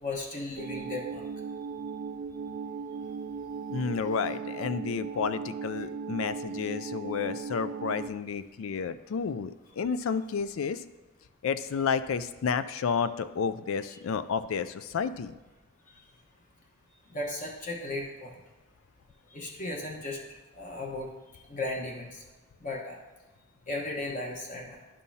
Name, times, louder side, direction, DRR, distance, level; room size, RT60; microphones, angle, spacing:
voice 1, 0.0-1.3 17.1-18.4 19.3-20.2 20.6-21.1 21.5-22.2 22.6-23.0 23.7-24.7, left 2 dB, 35° left, -1 dB, 1.1 m, -35 dB
sound 1, 0.6-8.1, right 5 dB, 75° right, 0.4 m, -37 dB
voice 2, 3.7-10.8 11.4-15.3, left 6 dB, 75° left, 12 dB, 0.4 m, -31 dB
11.5 x 5.4 x 2.8 m, 1.2 s
head